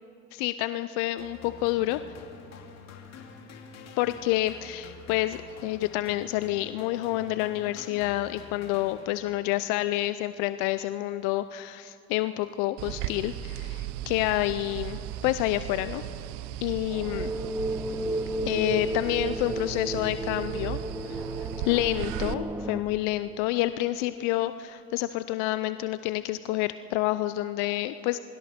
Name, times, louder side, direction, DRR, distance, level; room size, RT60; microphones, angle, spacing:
voice 1, 0.3-2.0 4.0-16.0 16.6-17.3 18.4-20.8 21.0-21.2 21.7-28.2, left 16 dB, 75° left, 13 dB, 0.6 m, -28 dB
sound 1, 1.2-9.5, left 5 dB, 55° left, 2.6 m, -47 dB
sound 2, 12.8-22.3, right 13 dB, 75° right, 0.8 m, -36 dB
sound 3, 16.9-22.8, right 1 dB, 5° right, 1.4 m, -33 dB
28.0 x 24.0 x 4.4 m, 2.7 s
hypercardioid pair, 65°, 31 cm